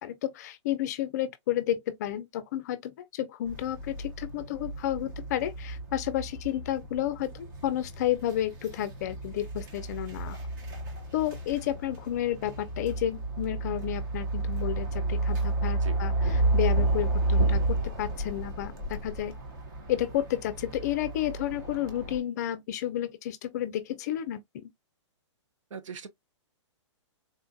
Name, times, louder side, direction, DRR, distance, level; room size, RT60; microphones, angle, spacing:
voice 1, 0.0-10.4 11.1-19.3 19.9-24.7, left 12 dB, 35° left, 0.4 m, -31 dB
sound 1, 3.5-22.2, right 2 dB, 40° right, 0.9 m, -31 dB
voice 2, 25.7-26.1, right 6 dB, 80° right, 0.7 m, -40 dB
3.8 x 2.2 x 2.6 m
hypercardioid pair, 155°, 16 cm